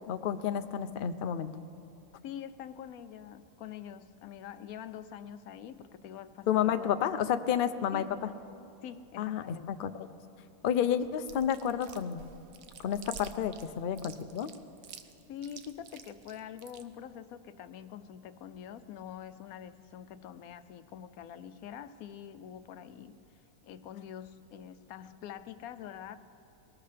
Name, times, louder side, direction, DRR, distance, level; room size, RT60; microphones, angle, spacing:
voice 1, 0.1-1.5 6.5-8.0 9.2-9.9 10.6-12.2 12.8-14.5, left 9 dB, 60° left, 10 dB, 0.5 m, -30 dB
voice 2, 2.2-6.7 7.9-8.1 8.8-9.7 15.3-23.2 23.6-26.2, left 9 dB, 85° left, 12 dB, 1.1 m, -45 dB
Chewing mastication, 11.3-16.8, right 7 dB, 75° right, 1.1 m, -49 dB
21.0 x 18.5 x 3.4 m, 2.7 s
omnidirectional pair, 1.5 m